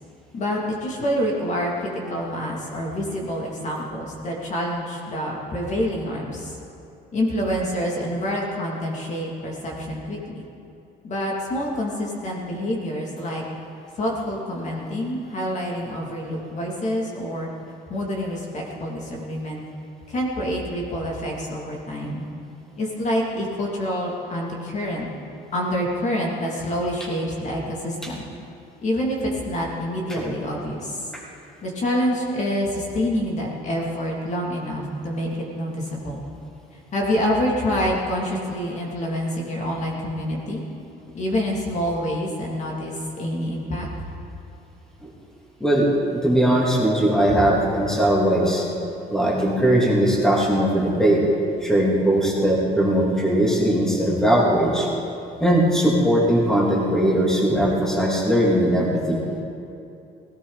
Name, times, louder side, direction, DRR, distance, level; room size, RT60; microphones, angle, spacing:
voice 1, 0.3-6.5 7.1-10.4 11.0-13.4 14.0-17.5 17.9-19.6 20.1-22.2 22.8-25.1 25.5-28.3 28.8-31.1 31.6-36.2 36.9-40.6 41.1-44.1, equal, 45° left, -2 dB, 2.7 m, -27 dB
voice 2, 46.2-48.6 49.1-51.2 51.6-54.9 55.4-59.2, right 1 dB, 5° left, -4 dB, 2.8 m, -19 dB
17.5 x 17.0 x 4.1 m, 2.7 s
cardioid pair, 110°, 17 cm